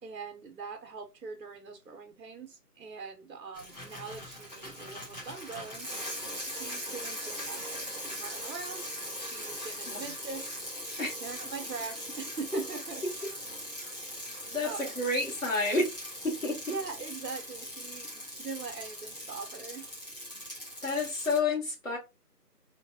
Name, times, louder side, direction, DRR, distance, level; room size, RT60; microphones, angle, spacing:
voice 1, 0.0-5.9 6.5-8.9 9.2-10.5 10.9-13.3 14.6-15.0 16.7-19.9, right 5 dB, 85° right, 1.0 m, -42 dB
Bicycle, 3.5-21.4, equal, 25° left, 1.2 m, -40 dB
voice 2, 14.5-15.9 16.2-16.6 20.8-22.0, left 3 dB, 55° left, 2.1 m, -29 dB
3.8 x 2.2 x 2.7 m
figure-of-eight pair, 180°, 48 cm